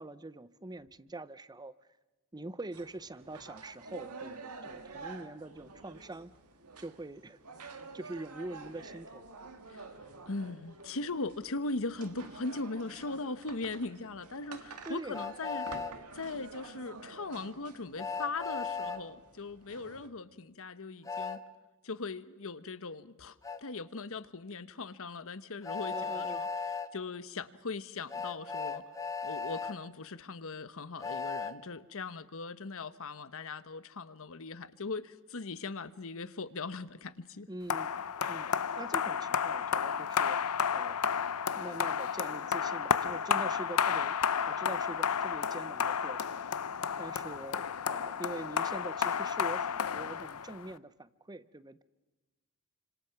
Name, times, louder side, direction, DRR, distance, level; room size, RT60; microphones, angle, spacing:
voice 1, 0.0-1.7 2.3-6.3 6.8-9.3 14.8-15.3 15.7-15.9 25.9-26.4 37.5-37.9 38.3-38.5 38.8-41.0 41.5-44.1 44.5-46.4 47.0-51.8, right 2 dB, 20° right, 0.7 m, -44 dB
sound 1, 2.7-20.1, right 3 dB, 85° right, 2.0 m, -49 dB
voice 2, 10.3-15.7 16.1-21.4 21.8-26.5 26.9-28.9 29.2-37.5, left 3 dB, 65° left, 1.1 m, -39 dB
Train, 15.1-15.9 18.0-19.0 21.1-21.4 23.4-23.6 25.6-26.9 28.1-29.7 31.0-31.5, left 5 dB, 15° left, 1.1 m, -36 dB
sound 2, 37.7-50.7, left 7 dB, 85° left, 0.7 m, -32 dB
29.0 x 26.0 x 5.9 m
head